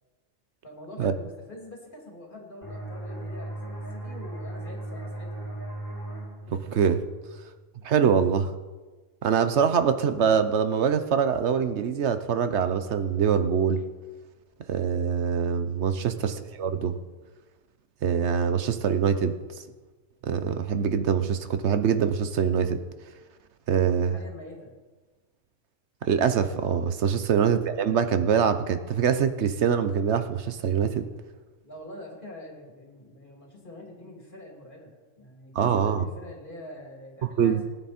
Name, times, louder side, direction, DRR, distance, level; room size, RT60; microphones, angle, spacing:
voice 1, 0.6-5.6 23.9-24.8 31.6-37.6, left 1 dB, 40° left, -1 dB, 3.1 m, -45 dB
sound 1, 2.6-8.0, right 1 dB, 25° left, 3.8 m, -38 dB
voice 2, 6.5-7.0 7.8-8.5 9.2-13.8 14.7-17.0 18.0-19.4 20.2-22.8 23.7-24.1 26.0-31.1 35.5-36.0 37.2-37.6, right 7 dB, 65° right, 10 dB, 1.0 m, -24 dB
18.0 x 9.4 x 4.3 m, 1.3 s
omnidirectional pair, 1.3 m